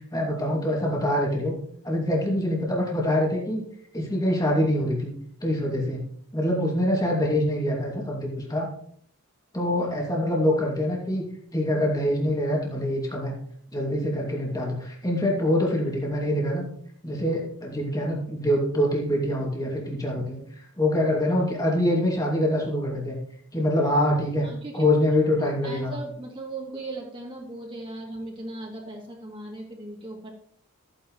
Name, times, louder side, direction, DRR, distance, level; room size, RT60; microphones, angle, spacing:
voice 1, 0.1-1.5 1.8-3.6 3.9-5.1 5.4-6.0 6.3-8.7 9.5-11.2 11.5-13.3 13.7-16.6 17.0-20.4 20.8-23.2 23.5-24.4 24.7-25.9, left 1 dB, 15° left, -2 dB, 2.6 m, -25 dB
voice 2, 24.4-30.3, right 2 dB, 25° right, -2 dB, 2.8 m, -38 dB
14.5 x 9.5 x 3.2 m, 0.65 s
head